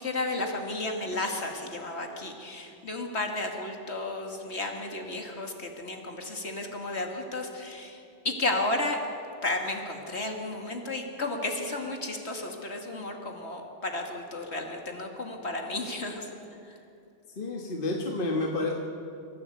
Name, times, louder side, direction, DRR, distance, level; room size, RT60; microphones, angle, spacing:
voice 1, 0.0-9.0 9.4-16.3 16.7-16.8, left 2 dB, 65° left, 2 dB, 2.5 m, -33 dB
voice 2, 17.4-18.7, left 2 dB, 45° left, 0 dB, 1.7 m, -29 dB
25.5 x 15.0 x 8.2 m, 2.6 s
omnidirectional pair, 1.2 m